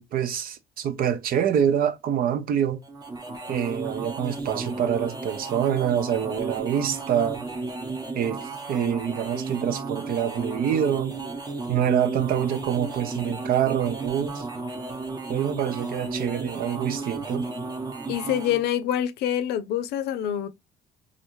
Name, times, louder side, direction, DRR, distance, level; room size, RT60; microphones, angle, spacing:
voice 1, 0.0-2.8 3.5-7.4 8.1-11.1 11.7-14.4 15.3-17.5, right 9 dB, 60° right, 0.6 m, -26 dB
sound 1, 2.8-18.7, right 3 dB, 25° right, 0.8 m, -33 dB
voice 2, 18.1-20.5, left 10 dB, 75° left, 0.5 m, -26 dB
3.2 x 2.5 x 3.0 m
cardioid pair, 110°, 17 cm